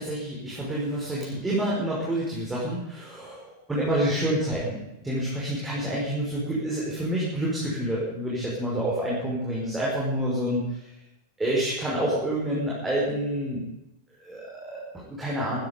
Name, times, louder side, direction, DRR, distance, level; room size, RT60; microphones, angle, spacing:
voice 1, 0.0-10.8 11.4-13.6 14.2-15.7, right 1 dB, 10° right, -5 dB, 5.6 m, -28 dB
15.5 x 15.0 x 5.3 m, 0.91 s
figure-of-eight pair, 90°, 0 cm